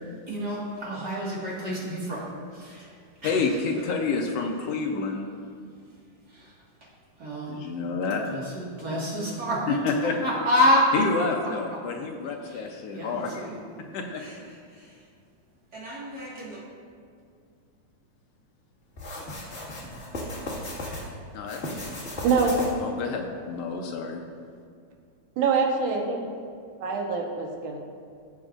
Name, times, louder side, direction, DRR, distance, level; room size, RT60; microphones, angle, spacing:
voice 1, 0.3-2.9 3.2-3.4 6.3-6.5 7.2-7.6 8.3-11.0 12.4-12.6 12.9-13.6 14.2-14.4 14.7-15.0 15.7-16.6, equal, 35° right, -5 dB, 1.9 m, -28 dB
voice 2, 3.2-5.3 7.5-8.6 9.7-10.1 10.9-13.5 13.9-14.2 21.3-21.6 22.8-24.2, left 4 dB, 75° left, 2 dB, 1.5 m, -29 dB
sound 1, 19.0-21.0 21.4-22.9, left 1 dB, 30° left, 1.6 m, -35 dB
voice 3, 22.2-22.6 25.4-26.2 26.8-27.8, right 5 dB, 85° right, 0 dB, 2.6 m, -24 dB
16.0 x 7.6 x 2.5 m, 2.3 s
omnidirectional pair, 3.5 m